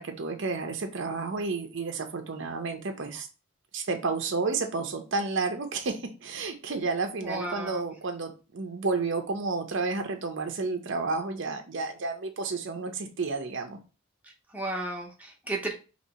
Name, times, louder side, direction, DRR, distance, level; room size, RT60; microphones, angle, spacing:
voice 1, 0.0-3.3 3.7-13.8, right 4 dB, 60° right, 5 dB, 0.6 m, -31 dB
voice 2, 7.2-7.8 14.2-15.7, right 2 dB, 5° right, 0 dB, 0.8 m, -34 dB
2.9 x 2.8 x 4.1 m, 0.32 s
head